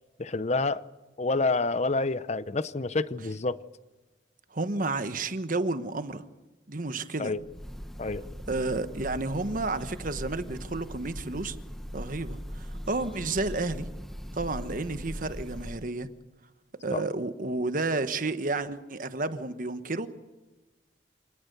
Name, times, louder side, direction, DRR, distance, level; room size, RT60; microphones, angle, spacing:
voice 1, 0.2-0.8 1.2-3.6 7.2-7.4 8.0-8.2 16.9-17.0, left 3 dB, 40° left, 0.8 m, -28 dB
voice 2, 4.5-6.2 6.7-7.3 8.5-11.6 11.9-13.9 14.3-16.1 16.8-20.1, right 2 dB, 50° right, 1.3 m, -31 dB
Breathing / Bird, 7.4-15.9, equal, ahead, 1.2 m, -40 dB
26.5 x 19.0 x 6.8 m
head